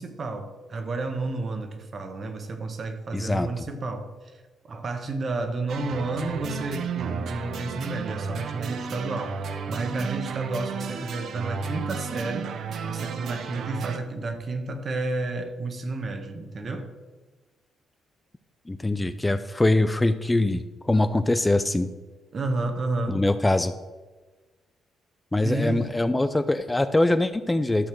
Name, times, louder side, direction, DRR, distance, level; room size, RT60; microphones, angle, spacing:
voice 1, 0.0-4.1 4.7-9.4 9.7-12.5 12.8-16.9 22.3-23.2 25.4-25.9, right 3 dB, 45° right, 7 dB, 1.4 m, -31 dB
voice 2, 3.1-3.6 18.7-21.9 23.1-23.7 25.3-27.9, left 2 dB, 15° left, 11 dB, 0.5 m, -23 dB
sound 1, 5.7-14.0, right 5 dB, 65° right, 0.9 m, -33 dB
12.5 x 4.2 x 7.7 m, 1.3 s
cardioid pair, 90°, 0 cm